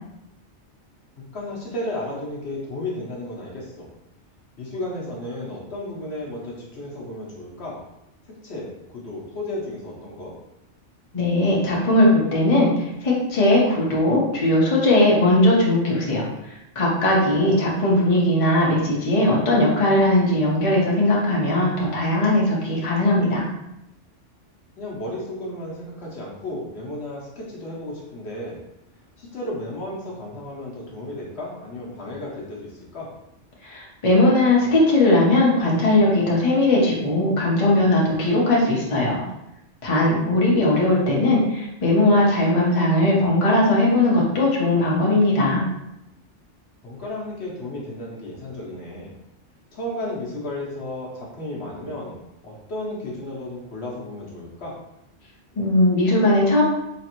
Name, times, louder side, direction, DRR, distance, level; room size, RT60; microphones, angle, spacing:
voice 1, 1.3-3.9 4.6-7.8 8.4-10.3 17.4-18.0 24.8-28.6 29.2-33.1 40.0-40.5 46.8-49.1 49.7-52.2 52.4-54.7, left 1 dB, 65° left, -4 dB, 1.2 m, -33 dB
voice 2, 11.1-16.2 16.7-23.4 33.6-39.2 39.8-45.6 55.6-56.6, left 1 dB, 30° left, -4 dB, 0.9 m, -19 dB
4.1 x 3.1 x 3.0 m, 0.86 s
omnidirectional pair, 1.2 m